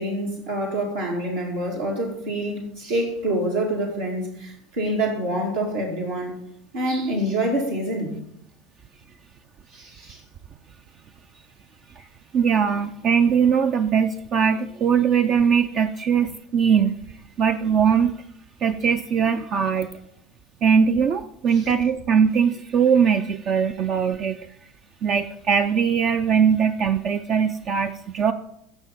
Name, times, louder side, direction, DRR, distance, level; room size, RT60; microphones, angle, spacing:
voice 1, 0.0-6.4 6.7-8.1 9.7-10.2 12.0-12.1 21.6-21.7, right 1 dB, 75° right, -2 dB, 2.1 m, -26 dB
voice 2, 12.3-18.1 18.6-19.9 20.6-24.4 25.0-28.3, right 7 dB, 45° right, 8 dB, 0.5 m, -21 dB
16.0 x 5.8 x 4.0 m, 0.75 s
figure-of-eight pair, 75°, 0 cm